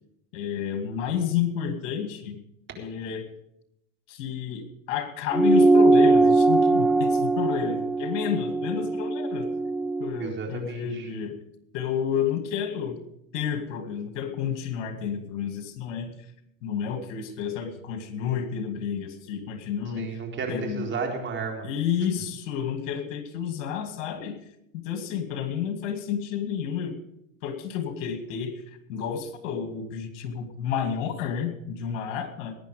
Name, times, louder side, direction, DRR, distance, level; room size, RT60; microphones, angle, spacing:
voice 1, 0.3-2.4 2.8-3.3 4.1-9.5 10.0-11.4 11.7-13.0 13.3-16.1 16.6-20.1 20.5-20.9 21.6-24.4 24.7-27.0 27.4-32.5, left 8 dB, 70° left, 7 dB, 2.4 m, -30 dB
sound 1, 5.3-10.1, right 3 dB, 5° right, 0.5 m, -21 dB
voice 2, 10.1-11.1 19.9-21.7, right 4 dB, 30° right, 2 dB, 4.1 m, -32 dB
19.5 x 9.9 x 5.0 m, 0.80 s
supercardioid pair, 110°, 37 cm